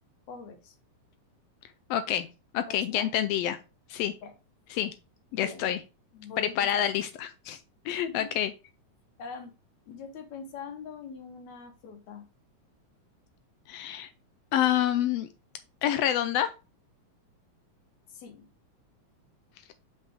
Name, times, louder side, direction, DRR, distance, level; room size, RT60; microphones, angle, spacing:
voice 1, 0.3-0.8 2.7-3.1 4.2-4.3 5.3-5.7 6.1-6.9 8.1-8.3 9.2-9.5 9.9-12.2 18.1-18.5, left 5 dB, 70° left, 2.2 m, -43 dB
voice 2, 1.9-2.3 2.5-3.6 3.9-4.2 4.7-4.9 5.3-5.8 6.4-7.6 7.8-8.5 13.7-14.1 14.5-15.3 15.8-16.5, left 11 dB, 85° left, 1.4 m, -27 dB
6.0 x 5.8 x 3.5 m
omnidirectional pair, 3.5 m